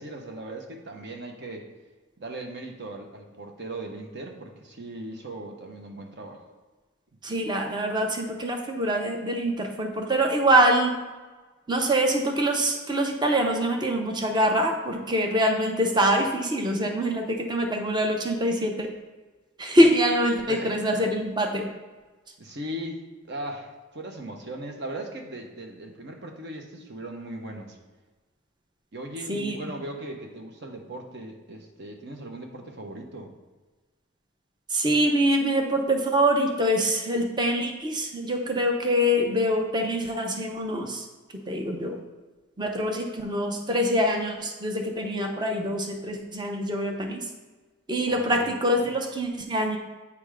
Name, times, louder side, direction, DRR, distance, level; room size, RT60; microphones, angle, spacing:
voice 1, 0.0-1.7 2.2-6.5 20.5-21.0 22.4-23.0 23.3-27.8 28.9-33.3 48.0-48.5 48.7-48.9, right 1 dB, 55° right, 3 dB, 1.0 m, -38 dB
voice 2, 7.2-10.9 11.7-18.9 19.6-21.7 29.3-29.6 34.7-41.0 41.5-42.0 42.6-47.2 47.9-49.8, equal, 20° right, 3 dB, 0.7 m, -24 dB
8.5 x 3.5 x 5.0 m, 1.3 s
head